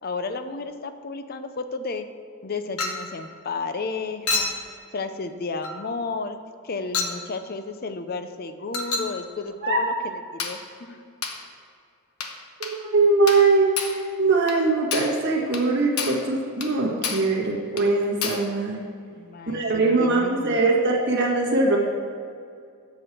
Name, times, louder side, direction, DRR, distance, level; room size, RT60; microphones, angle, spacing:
voice 1, 0.0-2.0 2.4-4.5 4.9-6.4 6.6-11.0 19.1-20.7, left 4 dB, 45° left, 9 dB, 0.5 m, -32 dB
Chink clink, 2.8-3.1 4.3-4.6 5.6-5.8 6.9-7.2 8.7-9.2 10.4-10.6 11.2-11.4 12.2-12.4 12.6-12.8 13.3-13.5 13.8-14.0 14.5-14.6 14.9-15.2 15.5-15.7 16.0-16.3 16.6-16.7 17.0-17.3 17.8-17.9 18.2-18.5, left 4 dB, 80° left, 1.0 m, -29 dB
voice 2, 12.6-18.8 19.5-21.8, right 3 dB, 50° right, -3 dB, 1.8 m, -21 dB
7.6 x 6.2 x 7.7 m, 2.3 s
head